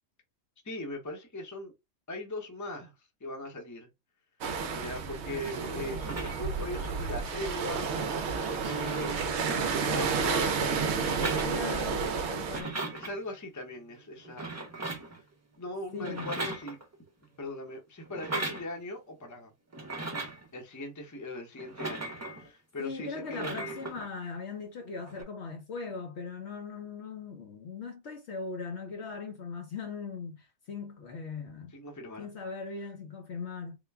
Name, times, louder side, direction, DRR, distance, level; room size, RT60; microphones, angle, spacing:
voice 1, 0.6-1.7 2.1-2.9 3.2-3.9 4.7-7.9 8.5-10.6 12.0-12.4 12.9-15.2 15.6-16.8 17.4-19.5 20.5-23.8 31.7-32.3, left 1 dB, 15° left, 0.7 m, -40 dB
sound 1, 4.4-12.6, right 5 dB, 65° right, 0.8 m, -31 dB
sound 2, 6.0-6.6 7.8-7.9 8.1-10.1 10.9-12.0 12.3-13.1 14.2-15.2 16.0-17.1 18.1-18.7 19.7-20.5 21.6-22.5 23.2-24.1 25.1-25.2, right 2 dB, 20° right, 0.4 m, -38 dB
sound 3, 8.6-14.6, right 4 dB, 35° right, 1.1 m, -47 dB
voice 2, 11.4-12.8 15.9-16.3 22.8-31.7 32.2-33.8, left 4 dB, 60° left, 0.8 m, -39 dB
3.6 x 2.2 x 3.4 m
omnidirectional pair, 1.4 m